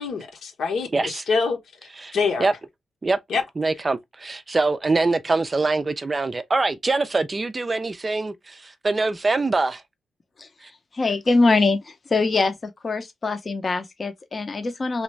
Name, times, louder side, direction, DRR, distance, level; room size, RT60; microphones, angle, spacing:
voice 1, 0.0-1.6 2.1-2.5 3.3-3.4, left 4 dB, 75° left, 1.0 m, -25 dB
voice 2, 0.9-1.2 2.0-2.1 2.4-2.5 3.0-3.2 3.6-9.8 10.6-10.7, right 3 dB, 25° right, 0.4 m, -24 dB
voice 3, 10.9-15.0, left 3 dB, 35° left, 0.6 m, -23 dB
3.1 x 2.5 x 3.0 m
cardioid pair, 115°, 0 cm